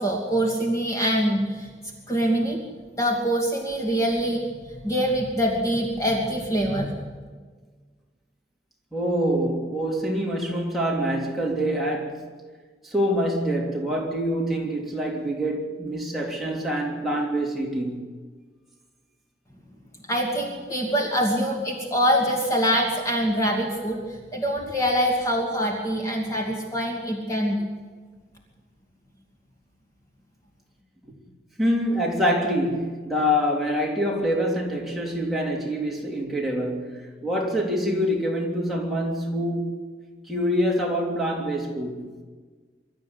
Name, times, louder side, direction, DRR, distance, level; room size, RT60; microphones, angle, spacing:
voice 1, 0.0-1.7 2.1-2.6 3.0-4.4 4.7-7.0 20.1-27.6, equal, 20° left, 2.7 m, -24 dB
voice 2, 8.9-12.3 12.8-18.1 31.0-31.1 31.6-39.8 40.3-42.1, equal, ahead, 3.3 m, -25 dB
24.0 x 13.0 x 9.7 m
head